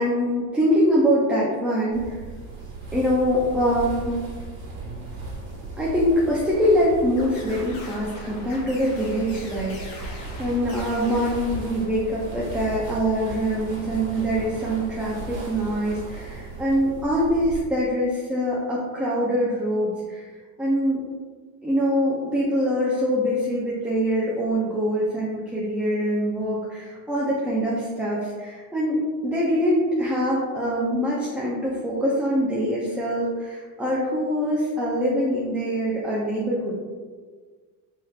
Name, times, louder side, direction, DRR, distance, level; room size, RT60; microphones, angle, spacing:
voice 1, 0.0-2.2 2.9-4.1 5.8-20.3 20.6-21.0 21.6-36.8, equal, 5° right, -7 dB, 0.4 m, -24 dB
sound 1, 1.9-17.6, right 3 dB, 55° right, 1.4 m, -37 dB
sound 2, 7.2-12.3, left 2 dB, 80° left, 1.2 m, -43 dB
3.3 x 3.0 x 2.3 m, 1.5 s
cardioid pair, 105°, 42 cm